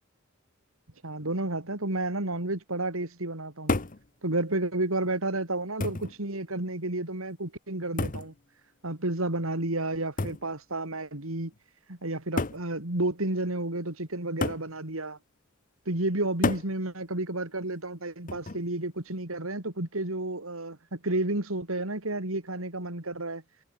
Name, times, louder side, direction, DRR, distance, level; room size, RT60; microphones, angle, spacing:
voice 1, 1.0-3.8 4.2-8.3 8.8-11.5 11.9-15.2 15.9-23.4, right 2 dB, 80° right, 3.7 m, -31 dB
sound 1, 3.7-4.0 5.1-5.2 5.8-6.2 8.0-8.3 10.2-10.5 11.5-11.6 12.4-12.7 14.4-14.7 16.4-16.7 18.3-18.7, left 2 dB, 40° left, 1.2 m, -30 dB
head